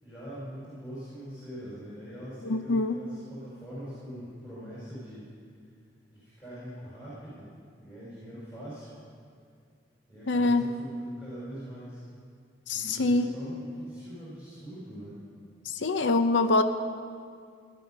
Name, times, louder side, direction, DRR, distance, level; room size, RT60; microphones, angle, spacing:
voice 1, 0.0-5.2 6.1-7.5 7.8-8.9 10.1-12.0 12.7-15.2, equal, 20° left, -11 dB, 4.4 m, -42 dB
voice 2, 2.4-3.0 10.3-10.7 12.7-13.3 15.7-16.6, left 2 dB, 70° left, 9 dB, 0.7 m, -24 dB
16.5 x 11.5 x 5.4 m, 2.2 s
head